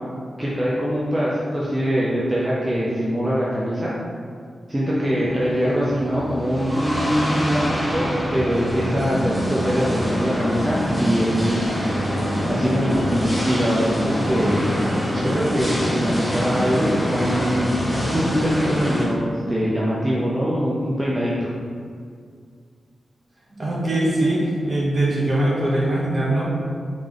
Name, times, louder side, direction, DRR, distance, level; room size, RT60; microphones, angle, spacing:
voice 1, 0.4-3.9 4.7-11.7 12.5-14.8 15.1-17.8 18.1-21.5, equal, 15° right, -7 dB, 0.5 m, -23 dB
sound 1, 5.0-19.1, equal, 5° left, 1.0 m, -25 dB
voice 2, 23.6-26.4, right 1 dB, 35° right, -5 dB, 1.0 m, -21 dB
3.7 x 3.4 x 3.8 m, 2.2 s
wide cardioid pair, 145°, 0 cm